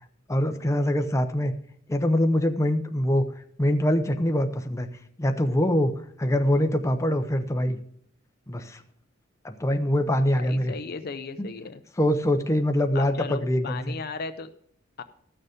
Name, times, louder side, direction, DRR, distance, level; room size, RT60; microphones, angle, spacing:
voice 1, 0.3-1.5 1.9-3.2 3.6-4.9 5.2-5.9 6.2-7.8 8.5-8.8 9.4-10.7 11.4-11.5 12.0-13.9, left 1 dB, 15° left, 6 dB, 0.7 m, -24 dB
voice 2, 10.3-11.8 12.9-14.5 15.0-15.1, left 4 dB, 50° left, 10 dB, 0.6 m, -36 dB
14.0 x 6.7 x 5.0 m, 0.65 s
head